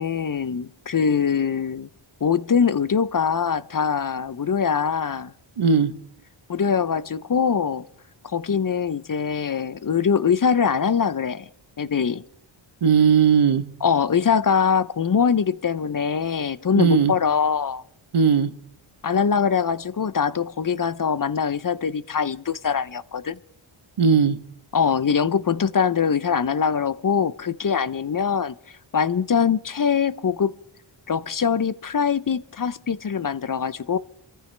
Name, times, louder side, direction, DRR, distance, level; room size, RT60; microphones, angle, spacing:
voice 1, 0.0-1.9 2.2-5.3 6.5-7.8 8.2-11.5 11.8-12.2 13.8-17.8 19.0-23.4 24.7-28.5 28.9-30.5 31.1-34.0, left 6 dB, 40° left, 0.5 m, -23 dB
voice 2, 5.6-5.9 12.8-13.6 16.8-17.1 18.1-18.5 24.0-24.4, right 6 dB, 75° right, 1.1 m, -17 dB
27.0 x 14.5 x 3.3 m
wide cardioid pair, 65°, 50 cm